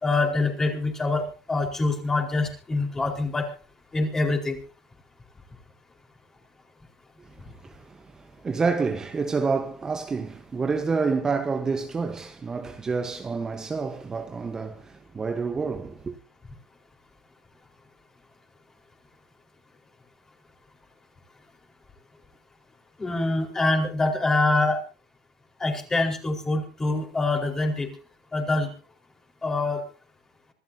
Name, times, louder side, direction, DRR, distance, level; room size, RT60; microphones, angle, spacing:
voice 1, 0.0-3.5 3.9-4.6 23.0-24.8 25.6-27.9 28.3-28.7 29.4-29.8, left 2 dB, 15° left, 4.6 m, -25 dB
voice 2, 7.6-16.2, right 4 dB, 20° right, 1.2 m, -28 dB
26.5 x 13.5 x 2.8 m
supercardioid pair, 110°, 3 cm